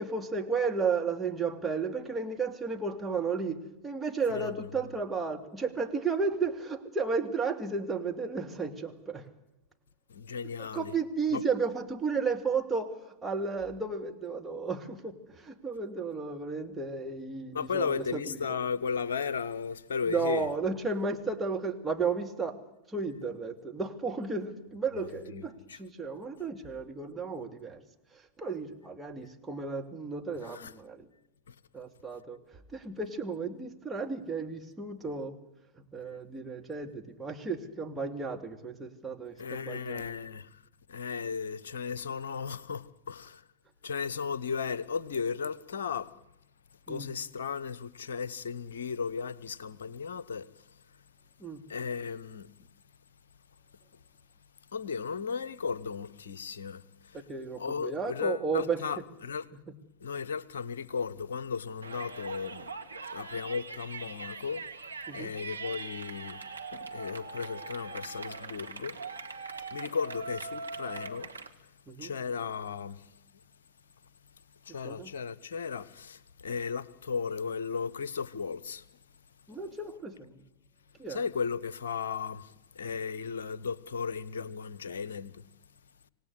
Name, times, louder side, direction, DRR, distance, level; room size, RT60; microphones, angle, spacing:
voice 1, 0.0-9.3 10.6-18.4 20.1-22.6 22.9-27.8 28.1-31.1 31.7-32.4 32.7-35.3 35.9-40.0 46.9-47.1 51.4-51.6 57.1-58.8 65.1-65.3 71.9-72.1 74.8-75.1 79.5-80.4 81.0-81.2, right 4 dB, 10° right, 2.4 m, -33 dB
voice 2, 4.3-4.7 10.1-10.9 11.3-11.4 17.5-20.5 25.0-25.8 30.4-30.7 31.5-31.6 39.4-40.6 40.9-43.4 43.8-46.1 46.9-50.7 51.7-52.5 54.7-57.2 57.6-59.4 60.0-62.7 63.1-64.7 65.1-69.0 69.7-71.3 72.0-73.1 74.6-78.8 81.1-85.4, left 5 dB, 65° left, 1.0 m, -35 dB
Yell, 61.8-71.5, right 4 dB, 80° right, 1.6 m, -41 dB
26.5 x 17.5 x 8.1 m
figure-of-eight pair, 90°, 0 cm